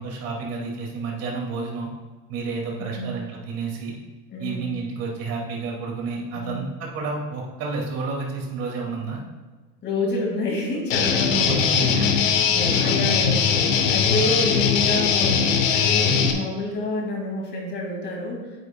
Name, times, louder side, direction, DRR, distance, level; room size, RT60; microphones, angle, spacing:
voice 1, 0.0-1.9 2.3-3.9 4.4-9.2 11.3-12.1 12.6-13.0 14.1-14.2 16.0-16.3, right 4 dB, 40° right, -1 dB, 2.3 m, -30 dB
voice 2, 2.8-3.1 4.3-4.7 6.3-6.6 9.8-12.2 12.5-18.5, left 2 dB, 30° left, -1 dB, 2.3 m, -28 dB
Guitar, 10.9-16.3, left 6 dB, 85° left, 1.2 m, -20 dB
9.6 x 8.8 x 2.3 m, 1.3 s
supercardioid pair, 150°, 38 cm